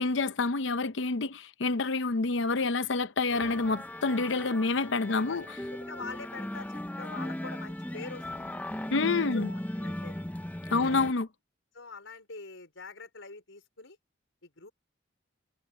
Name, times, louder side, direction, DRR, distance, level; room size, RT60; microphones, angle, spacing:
voice 1, 0.0-5.6 8.9-9.5 10.7-11.3, left 3 dB, 70° left, 0.7 m, -28 dB
sound 1, 3.3-11.1, left 1 dB, 10° left, 0.6 m, -38 dB
voice 2, 5.3-8.2 9.2-10.3 10.8-11.0 11.7-14.0 14.4-14.7, left 3 dB, 85° left, 4.8 m, -45 dB
head